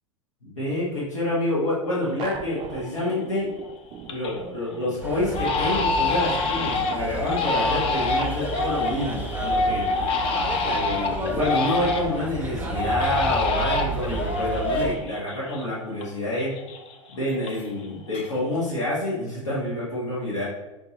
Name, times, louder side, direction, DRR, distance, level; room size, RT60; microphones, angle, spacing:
voice 1, 0.4-3.5 4.1-9.8 10.6-16.5 17.1-20.4, left 1 dB, 75° left, -9 dB, 1.5 m, -28 dB
Crying sobbing, 2.2-2.3 2.7-3.2 3.6-4.4 4.7-4.9 5.3-12.3 12.7-16.1 16.3-17.9 18.1-18.7, left 3 dB, 35° left, 0.6 m, -26 dB
sound 1, 2.2-12.4, right 7 dB, 30° right, 0.3 m, -42 dB
sound 2, 5.0-14.9, right 3 dB, 10° right, 0.8 m, -32 dB
5.7 x 2.7 x 3.1 m, 1.0 s
figure-of-eight pair, 85°, 16 cm